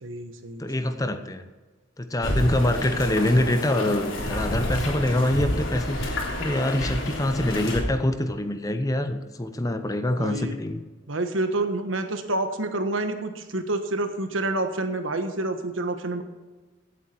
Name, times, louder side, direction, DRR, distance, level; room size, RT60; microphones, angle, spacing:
voice 1, 0.0-0.9 10.2-10.5 11.1-16.2, right 2 dB, 90° right, 7 dB, 1.4 m, -28 dB
voice 2, 0.6-1.4 2.0-10.8, left 1 dB, 20° left, 9 dB, 0.8 m, -25 dB
sound 1, 2.2-7.8, left 1 dB, 85° left, 3.3 m, -29 dB
16.0 x 8.4 x 4.5 m, 1.3 s
head